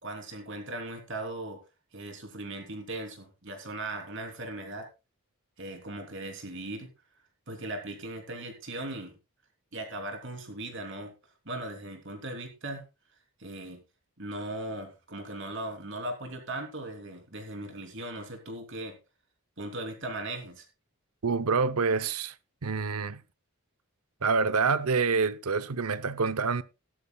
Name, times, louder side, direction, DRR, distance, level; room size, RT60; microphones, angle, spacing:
voice 1, 0.0-1.6 1.9-4.9 5.6-6.9 7.5-9.2 9.7-11.1 11.4-12.8 13.4-13.8 14.2-19.0 19.6-20.7, right 1 dB, 55° right, 3.2 m, -38 dB
voice 2, 21.2-22.3 22.6-23.2 24.2-26.6, right 4 dB, 80° right, 0.7 m, -27 dB
16.5 x 12.5 x 2.3 m
head